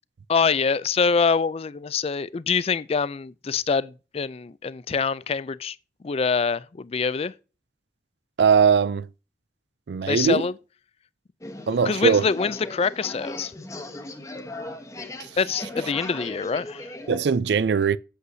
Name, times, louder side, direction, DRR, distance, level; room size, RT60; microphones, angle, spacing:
voice 1, 0.3-5.8 6.0-7.3 10.1-10.5 11.6-13.5 15.4-16.9, left 5 dB, 35° left, 0.4 m, -25 dB
voice 2, 8.4-9.1 9.9-10.5 11.7-12.2 17.1-18.0, right 6 dB, 70° right, 0.4 m, -20 dB
sound 1, 11.4-17.4, left 1 dB, 20° left, 1.1 m, -37 dB
8.0 x 7.9 x 2.7 m
head